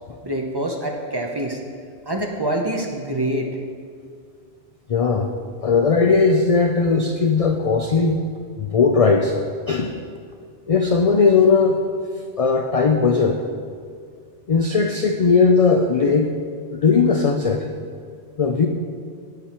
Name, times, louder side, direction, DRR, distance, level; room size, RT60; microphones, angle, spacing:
voice 1, 0.2-1.6 2.1-3.5, right 1 dB, 25° right, 1 dB, 0.8 m, -25 dB
voice 2, 4.9-5.3 5.6-8.2 8.6-9.3 9.7-9.9 10.7-11.8 12.4-13.4 14.5-16.3 16.7-17.7 18.4-18.7, left 4 dB, 60° left, 5 dB, 0.3 m, -18 dB
9.7 x 9.0 x 4.4 m, 2.1 s
omnidirectional pair, 1.2 m